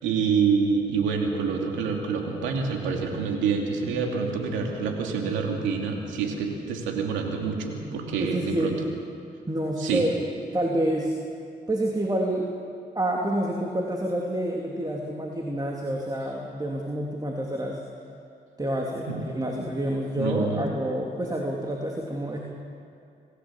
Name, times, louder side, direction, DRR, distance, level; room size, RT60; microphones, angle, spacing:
voice 1, 0.0-8.8 9.8-10.1 19.1-19.2 20.2-20.7, right 5 dB, 90° right, 2 dB, 2.6 m, -27 dB
voice 2, 8.2-8.8 9.5-10.1 10.5-11.2 11.7-12.5 12.9-17.8 18.6-22.4, right 1 dB, 20° right, 0 dB, 3.1 m, -28 dB
27.0 x 15.0 x 7.6 m, 2.6 s
supercardioid pair, 50°, 19 cm